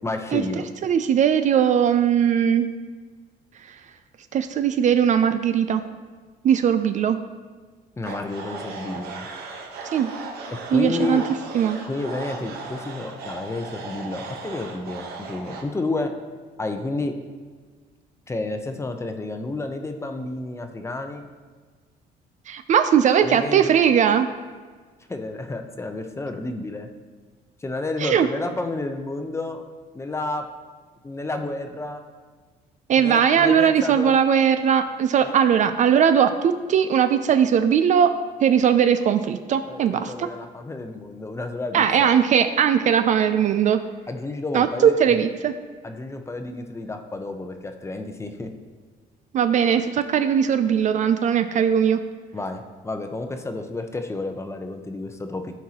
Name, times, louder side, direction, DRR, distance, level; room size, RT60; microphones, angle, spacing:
voice 1, 0.0-0.6 8.0-9.3 10.5-11.2 11.9-16.1 16.6-17.1 18.3-21.3 23.2-23.7 25.1-26.9 27.6-29.6 29.9-30.4 31.0-32.0 33.0-34.2 35.2-35.3 39.7-42.1 44.1-45.2 45.8-48.5 52.3-55.5, left 2 dB, 15° left, 6 dB, 0.7 m, -30 dB
voice 2, 0.8-2.7 3.7-3.8 4.3-5.8 6.4-7.2 9.9-10.1 10.7-11.2 11.5-11.8 22.5-24.3 28.0-28.3 32.9-38.2 38.4-40.3 41.7-43.8 44.5-45.5 49.3-52.0, right 8 dB, 45° right, 10 dB, 0.4 m, -19 dB
sound 1, 8.0-15.6, right 4 dB, 70° right, 1.0 m, -37 dB
13.5 x 4.6 x 2.9 m, 1.5 s
cardioid pair, 110°, 17 cm